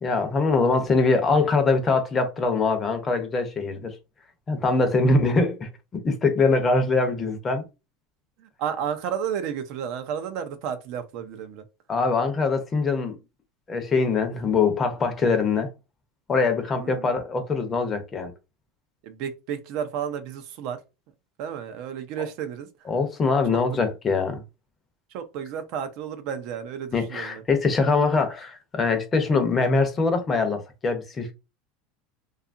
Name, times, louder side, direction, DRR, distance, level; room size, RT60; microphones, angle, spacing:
voice 1, 0.0-3.9 4.5-7.6 11.9-13.2 13.7-15.7 16.3-18.3 22.2-22.3 22.9-24.4 26.9-31.3, left 3 dB, 20° left, 0.6 m, -23 dB
voice 2, 8.4-11.6 16.8-17.1 19.0-20.8 21.4-22.7 25.1-27.4, right 8 dB, 60° right, 0.5 m, -32 dB
2.7 x 2.3 x 2.5 m
supercardioid pair, 140°, 0 cm